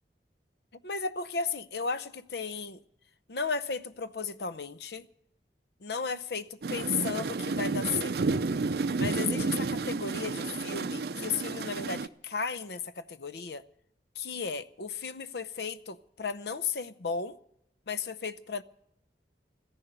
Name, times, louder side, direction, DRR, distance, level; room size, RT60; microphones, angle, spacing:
voice 1, 0.8-2.8 3.3-5.1 5.8-8.1 9.0-13.6 14.2-17.4 17.9-18.6, left 5 dB, 65° left, 0.7 m, -34 dB
sound 1, 6.6-12.1, right 3 dB, 60° right, 0.5 m, -31 dB
14.5 x 10.5 x 8.9 m
head